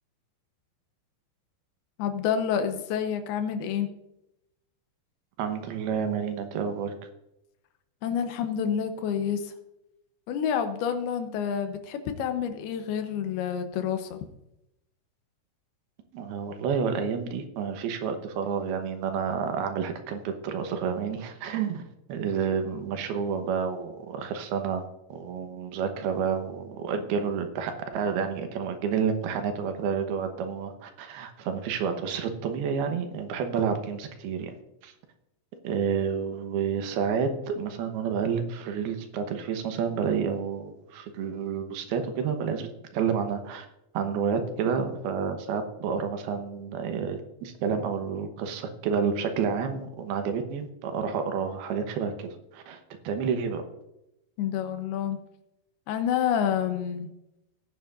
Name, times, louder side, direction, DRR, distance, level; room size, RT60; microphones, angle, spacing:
voice 1, 2.0-3.9 8.0-9.5 10.3-14.2 54.4-55.2 55.9-57.1, left 8 dB, 80° left, 7 dB, 2.9 m, -28 dB
voice 2, 5.4-6.9 16.1-24.8 25.1-34.5 34.8-34.9 35.6-43.7 43.9-53.6, right 6 dB, 85° right, 6 dB, 3.0 m, -30 dB
18.0 x 9.0 x 2.6 m, 0.87 s
omnidirectional pair, 4.5 m